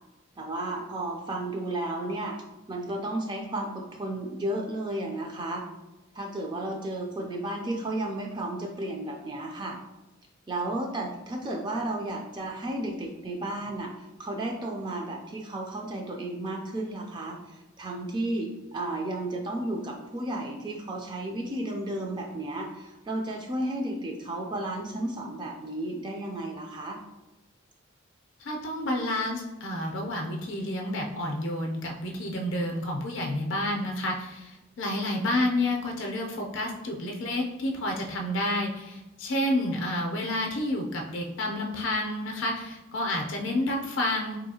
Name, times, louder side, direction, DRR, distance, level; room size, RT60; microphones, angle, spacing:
voice 1, 0.4-2.4 2.7-5.6 6.1-9.8 10.5-13.9 14.2-27.0, right 1 dB, 20° right, 1 dB, 0.3 m, -33 dB
voice 2, 28.4-44.4, left 1 dB, 65° left, 1 dB, 0.5 m, -30 dB
3.9 x 2.7 x 2.7 m, 1.0 s
head